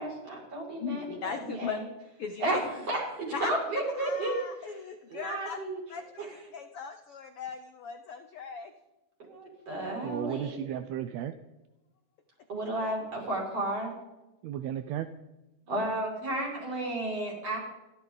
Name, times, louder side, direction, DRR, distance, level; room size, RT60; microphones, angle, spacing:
voice 1, 0.0-1.0 1.5-1.8 2.4-4.3 5.1-5.8 6.2-6.3 9.2-10.6 12.5-13.9 15.7-17.6, right 1 dB, 45° right, -3 dB, 7.0 m, -32 dB
voice 2, 0.8-1.8 2.2-2.6 3.3-3.5 3.9-5.6 5.9-6.3 6.5-8.7, left 6 dB, 70° left, 7 dB, 1.3 m, -38 dB
voice 3, 10.0-11.4 14.4-15.1, right 10 dB, 75° right, 9 dB, 1.7 m, -34 dB
28.0 x 13.0 x 4.0 m, 1.0 s
omnidirectional pair, 3.7 m